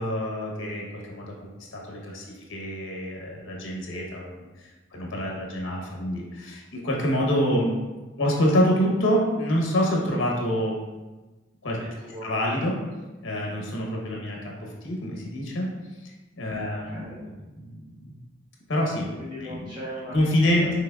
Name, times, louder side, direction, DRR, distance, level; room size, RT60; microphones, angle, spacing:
voice 1, 0.0-2.2 2.5-7.7 8.2-10.8 11.6-11.8 12.2-12.8 13.2-15.7 16.4-17.1 17.6-18.2 18.7-19.1 19.4-19.7 20.1-20.8, equal, 90° left, -2 dB, 0.9 m, -26 dB
voice 2, 11.8-12.3 16.6-17.5 19.2-20.2 20.6-20.8, equal, 25° right, -8 dB, 0.6 m, -40 dB
5.9 x 3.2 x 2.3 m, 1.2 s
head